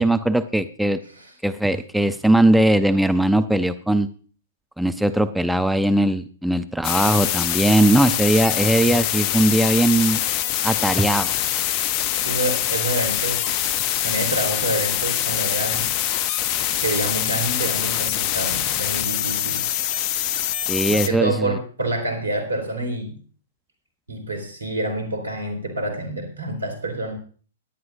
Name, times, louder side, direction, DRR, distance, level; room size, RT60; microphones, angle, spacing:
voice 1, 0.0-1.0 1.4-4.1 4.8-10.2 10.6-11.4 20.7-21.5, right 1 dB, ahead, 10 dB, 0.6 m, -19 dB
sound 1, 6.8-21.1, left 12 dB, 35° left, 0.8 m, -24 dB
voice 2, 12.2-13.5 14.0-15.9 16.8-19.6 20.9-23.2 24.1-27.1, right 2 dB, 80° right, 6 dB, 4.0 m, -27 dB
17.0 x 11.0 x 2.6 m, 0.41 s
figure-of-eight pair, 115°, 0 cm